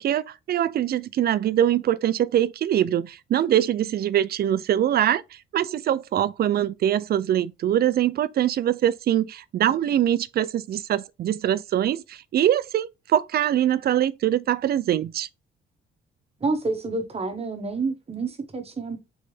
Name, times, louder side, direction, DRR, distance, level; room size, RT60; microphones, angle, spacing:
voice 1, 0.0-5.2 5.5-15.3, right 11 dB, 55° right, 0.4 m, -23 dB
voice 2, 16.4-19.0, right 3 dB, 30° right, 1.2 m, -28 dB
4.0 x 3.3 x 3.2 m
cardioid pair, 90°, 20 cm